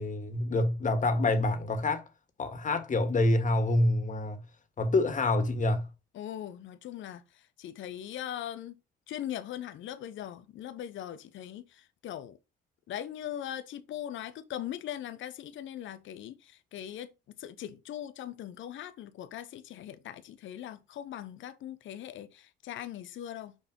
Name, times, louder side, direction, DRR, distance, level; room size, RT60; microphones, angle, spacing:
voice 1, 0.0-2.0 2.4-4.4 4.8-5.9, left 2 dB, 40° left, 1.8 m, -27 dB
voice 2, 6.1-8.7 9.1-12.4 12.9-17.1 17.4-23.6, left 11 dB, 75° left, 0.8 m, -40 dB
6.2 x 4.1 x 5.2 m
cardioid pair, 90°, 20 cm